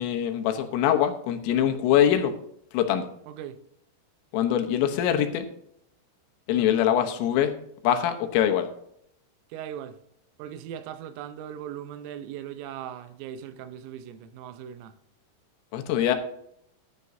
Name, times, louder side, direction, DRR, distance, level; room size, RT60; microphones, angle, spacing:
voice 1, 0.0-2.3 2.7-3.1 4.3-5.5 6.5-7.5 7.8-8.7 15.7-16.2, left 10 dB, 80° left, 3.6 m, -23 dB
voice 2, 3.3-3.6 9.5-10.0 10.4-14.9, right 10 dB, 90° right, 3.5 m, -39 dB
14.5 x 11.0 x 2.7 m
omnidirectional pair, 5.8 m